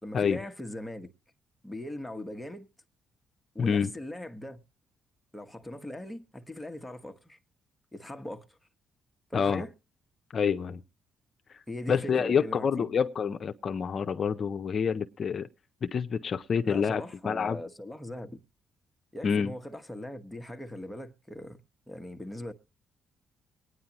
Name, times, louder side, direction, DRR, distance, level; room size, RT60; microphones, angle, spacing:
voice 1, 0.0-1.1 1.6-2.7 3.5-4.6 5.3-7.4 7.9-8.6 9.3-9.7 11.7-12.9 16.6-18.4 19.1-21.6 21.9-22.5, left 1 dB, 5° left, 1.2 m, -40 dB
voice 2, 3.6-3.9 9.3-9.6 10.3-10.8 11.5-11.6 11.9-15.5 15.8-17.6 19.2-19.5, left 6 dB, 50° left, 0.6 m, -27 dB
23.0 x 9.6 x 2.9 m
cardioid pair, 90°, 0 cm